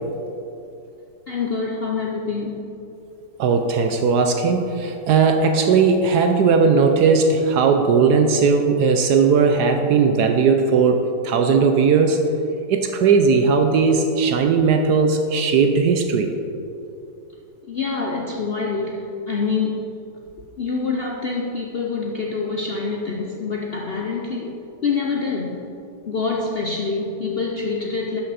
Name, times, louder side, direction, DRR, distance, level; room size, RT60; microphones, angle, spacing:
voice 1, 1.3-2.7 17.7-19.8 20.6-25.6 26.1-28.2, left 4 dB, 65° left, -1 dB, 0.5 m, -26 dB
voice 2, 3.4-12.2 12.7-16.3, right 5 dB, 70° right, 5 dB, 1.1 m, -17 dB
11.5 x 6.0 x 4.1 m, 2.7 s
omnidirectional pair, 1.9 m